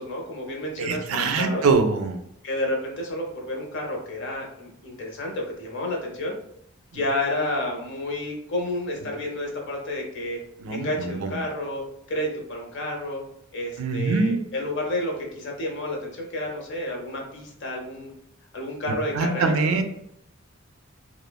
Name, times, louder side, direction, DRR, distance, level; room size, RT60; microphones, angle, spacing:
voice 1, 0.0-1.7 2.4-6.3 6.9-10.4 10.7-11.8 12.1-13.2 13.5-18.1 18.5-19.6, left 1 dB, 60° left, 0 dB, 0.7 m, -30 dB
voice 2, 0.8-2.2 10.6-10.9 13.8-14.4 19.2-19.8, right 4 dB, 85° right, 6 dB, 0.4 m, -23 dB
3.0 x 2.0 x 2.2 m, 0.73 s
head